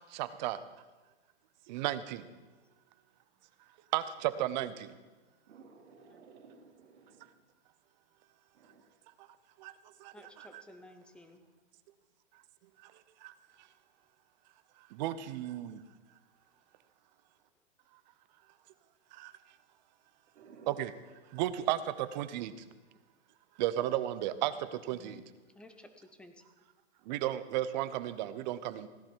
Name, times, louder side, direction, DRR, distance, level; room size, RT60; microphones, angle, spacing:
voice 1, 0.1-0.6 1.7-2.2 3.9-4.7 9.6-9.7 10.5-10.6 15.0-15.8 20.7-20.9 21.3-22.5 23.6-24.5 24.9-25.2 27.1-28.9, right 13 dB, 40° right, 13 dB, 0.8 m, -33 dB
voice 2, 5.5-7.3 8.6-8.8 20.3-20.8, right 4 dB, 70° right, 3 dB, 2.5 m, -55 dB
voice 3, 10.1-11.4 24.9-25.3 25.5-26.4, left 1 dB, 5° left, 8 dB, 0.5 m, -54 dB
16.5 x 11.0 x 4.6 m, 1.2 s
hypercardioid pair, 150°, 36 cm